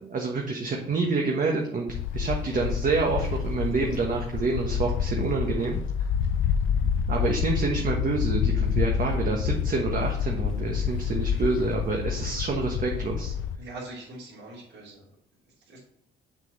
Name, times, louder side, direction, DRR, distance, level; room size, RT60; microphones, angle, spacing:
voice 1, 0.0-1.9 2.1-5.8 7.1-13.3, right 3 dB, 45° right, 0 dB, 1.3 m, -27 dB
sound 1, 1.9-13.6, left 7 dB, 85° left, 0.6 m, -28 dB
voice 2, 13.6-15.0 15.7-15.8, right 2 dB, 70° right, -9 dB, 3.2 m, -42 dB
6.9 x 6.1 x 4.1 m, 0.69 s
cardioid pair, 90°, 20 cm